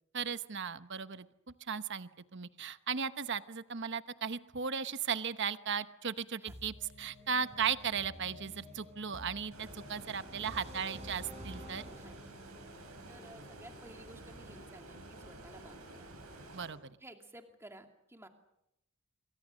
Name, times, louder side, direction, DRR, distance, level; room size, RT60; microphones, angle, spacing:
voice 1, 0.1-1.3 1.7-11.8 16.5-17.0, right 6 dB, 55° right, 12 dB, 1.0 m, -36 dB
sound 1, 6.5-14.3, equal, 30° right, 5.6 m, -52 dB
sound 2, 7.9-11.7, equal, 20° left, 1.7 m, -58 dB
Stream, 9.5-16.7, right 1 dB, 90° right, 7.5 m, -51 dB
voice 2, 13.1-16.1 17.0-18.3, right 1 dB, 10° right, 4 dB, 2.4 m, -54 dB
27.5 x 24.0 x 6.4 m, 0.83 s
head